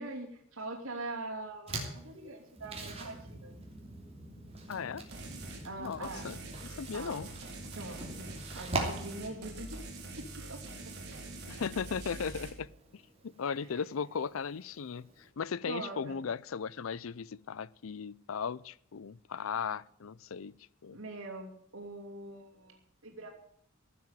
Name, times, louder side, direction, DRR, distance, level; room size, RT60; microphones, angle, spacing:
voice 1, 0.0-3.6 5.6-6.4 6.9-7.3 7.7-9.9 10.2-10.6 15.7-16.2 20.9-23.4, right 2 dB, 80° right, 2.9 m, -43 dB
sound 1, 1.7-15.3, right 2 dB, 30° right, 3.0 m, -44 dB
sound 2, 2.5-8.1, right 1 dB, 10° left, 3.4 m, -52 dB
voice 2, 4.7-5.1 5.8-7.3 11.5-20.6 20.8-21.0, left 6 dB, 80° left, 0.5 m, -37 dB
sound 3, 5.1-5.6 6.0-12.5, right 2 dB, 55° right, 4.3 m, -44 dB
15.0 x 7.6 x 9.2 m
head